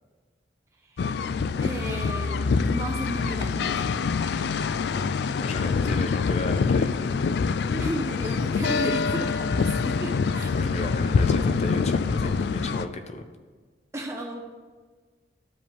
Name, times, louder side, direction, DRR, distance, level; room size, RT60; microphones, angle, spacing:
sound 1, 1.0-12.9, left 5 dB, 70° left, 0.3 m, -25 dB
voice 1, 1.6-3.9 7.7-10.6 13.9-14.4, right 1 dB, 15° right, 0 dB, 0.6 m, -34 dB
voice 2, 5.1-7.3 10.6-13.2, left 2 dB, 35° left, 7 dB, 0.7 m, -35 dB
12.0 x 5.0 x 3.5 m, 1.4 s
head